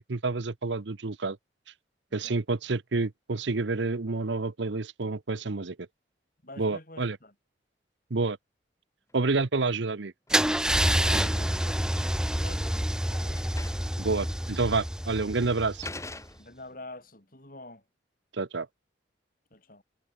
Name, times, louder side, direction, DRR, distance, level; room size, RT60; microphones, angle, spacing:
voice 1, 0.0-1.4 2.1-5.8 6.6-7.2 8.1-8.4 9.1-10.1 14.0-15.9 18.3-18.7, right 3 dB, 70° right, 0.8 m, -29 dB
voice 2, 6.4-7.3 10.9-13.4 16.4-17.8 19.5-19.8, left 2 dB, 45° left, 6.3 m, -46 dB
sound 1, 9.6-9.9 10.3-11.6 12.5-12.6 13.0-13.1 13.3-14.0 14.3-14.4 15.1-15.3 15.8-16.7, left 2 dB, 15° left, 4.7 m, -44 dB
Car / Engine starting / Idling, 10.3-16.2, equal, 5° right, 1.1 m, -28 dB
head